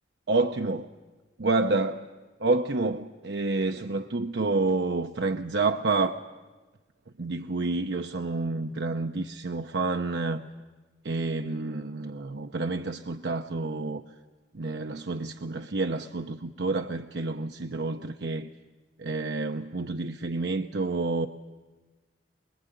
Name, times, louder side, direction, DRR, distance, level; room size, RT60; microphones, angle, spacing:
voice 1, 0.3-0.9 1.4-2.1 2.4-6.2 7.2-10.4 11.0-14.0 14.5-18.5 19.0-21.3, right 3 dB, 70° right, 0.7 m, -29 dB
23.5 x 22.0 x 9.2 m
head